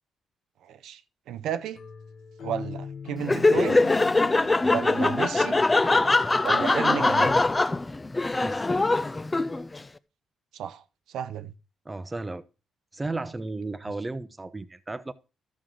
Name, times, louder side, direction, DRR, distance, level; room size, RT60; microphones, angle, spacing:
voice 1, 0.6-1.0 1.3-1.8 2.4-3.8 4.7-5.6 6.4-7.4 10.5-11.5, right 9 dB, 80° right, 0.5 m, -33 dB
sound 1, 1.8-6.7, left 7 dB, 60° left, 0.9 m, -42 dB
Laughter, 3.2-9.8, left 2 dB, 20° left, 0.5 m, -22 dB
voice 2, 11.9-12.4 12.9-15.1, right 2 dB, 20° right, 0.7 m, -34 dB
12.5 x 6.3 x 3.8 m
cardioid pair, 90°, 0 cm